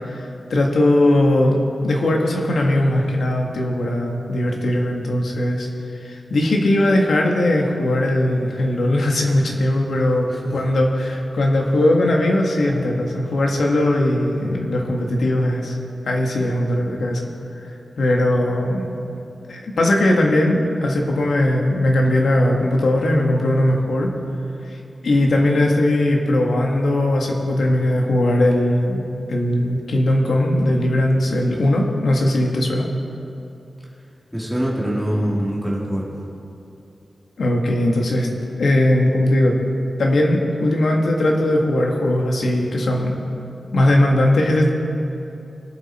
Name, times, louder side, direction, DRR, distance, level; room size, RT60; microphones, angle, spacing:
voice 1, 0.1-1.6 1.8-5.7 6.0-15.8 16.0-17.2 17.6-18.8 19.5-24.1 24.7-24.8 25.0-29.0 29.3-32.9 37.4-38.3 38.6-39.5 40.0-43.2 43.7-44.7, left 1 dB, 75° left, 0 dB, 1.9 m, -19 dB
voice 2, 10.3-10.6 34.3-36.1, equal, 5° right, -5 dB, 2.6 m, -24 dB
22.0 x 7.8 x 4.5 m, 2.8 s
wide cardioid pair, 165°, 0 cm